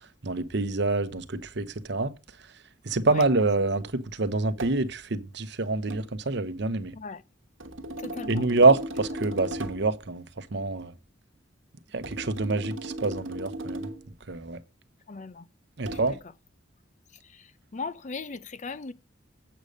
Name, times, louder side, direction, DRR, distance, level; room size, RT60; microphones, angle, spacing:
voice 1, 0.2-2.1 2.8-6.9 8.3-10.9 11.9-13.9 14.3-14.6 15.8-16.2, right 3 dB, 60° right, 0.9 m, -26 dB
sound 1, 4.6-4.9 5.9-6.1 7.6-9.9 12.0-14.1 15.9-16.2, equal, 90° right, 1.3 m, -37 dB
voice 2, 8.0-8.5 15.1-15.5 15.9-16.2 17.2-18.9, left 4 dB, 40° left, 0.5 m, -38 dB
8.0 x 6.5 x 5.3 m
head